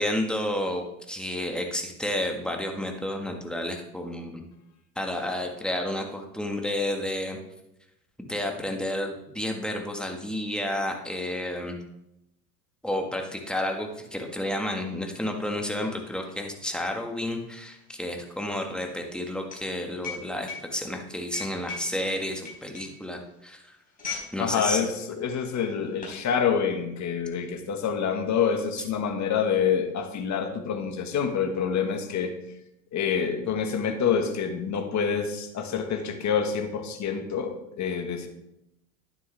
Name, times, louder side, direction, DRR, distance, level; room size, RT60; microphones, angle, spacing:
voice 1, 0.0-4.4 5.0-7.4 8.2-11.8 12.8-23.6 24.3-24.9, left 1 dB, ahead, 2 dB, 1.8 m, -31 dB
sound 1, 14.0-14.1 14.4-24.4 24.7-24.9 25.6-26.2, left 4 dB, 15° left, 4.3 m, -41 dB
voice 2, 24.4-32.3 32.9-38.3, left 7 dB, 40° left, 6 dB, 1.8 m, -27 dB
11.5 x 9.6 x 3.5 m, 0.85 s
hypercardioid pair, 80°, 46 cm